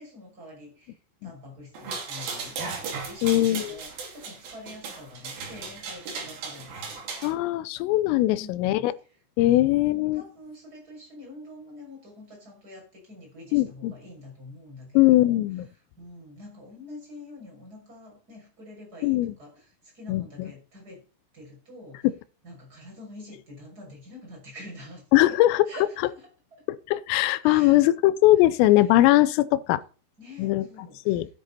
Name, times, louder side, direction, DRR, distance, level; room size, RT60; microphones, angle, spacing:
voice 1, 0.0-2.6 2.9-7.3 8.2-8.9 9.5-9.6 10.1-15.4 16.0-21.0 21.3-22.1 22.4-25.4 25.7-26.6 27.4-27.8 28.4-28.5 28.8-29.1 30.2-31.2, left 1 dB, 20° right, 6.7 m, -46 dB
sound 1, 1.7-7.3, right 5 dB, 50° right, 4.3 m, -36 dB
voice 2, 3.2-3.8 7.2-8.9 9.4-10.2 13.5-13.9 14.9-15.7 19.0-19.3 20.1-20.5 25.1-25.6 26.9-29.8 30.4-30.6 31.1-31.3, left 16 dB, 85° left, 3.3 m, -20 dB
12.5 x 10.5 x 4.2 m
omnidirectional pair, 5.8 m